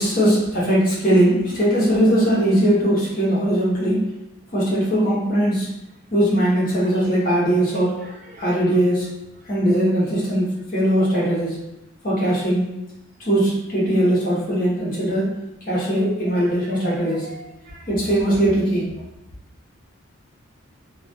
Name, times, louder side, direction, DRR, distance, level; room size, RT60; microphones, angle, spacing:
voice 1, 0.0-4.1 4.5-5.7 6.1-8.0 8.4-9.1 9.5-11.6 12.0-12.7 13.2-15.3 15.7-17.3 17.9-18.9, right 1 dB, 40° left, -6 dB, 0.8 m, -20 dB
voice 2, 6.8-7.1 7.7-8.8 13.7-14.0 16.2-18.0 18.9-19.0, right 2 dB, 40° right, 0 dB, 0.3 m, -44 dB
2.3 x 2.1 x 2.6 m, 0.89 s
head